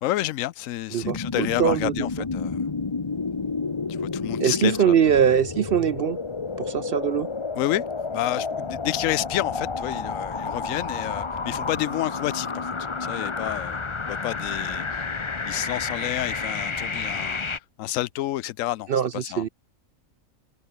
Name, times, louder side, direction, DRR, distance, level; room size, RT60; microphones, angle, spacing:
voice 1, 0.0-2.6 3.9-4.9 7.6-7.8 8.1-13.8 14.1-15.1 15.5-17.4 17.8-19.5, left 15 dB, 75° left, 1.0 m, -29 dB
voice 2, 0.9-1.9 4.4-6.2 6.6-7.3 18.9-19.5, right 8 dB, 55° right, 0.7 m, -22 dB
sound 1, 1.0-17.6, left 4 dB, 25° left, 0.8 m, -30 dB
omnidirectional pair, 1.4 m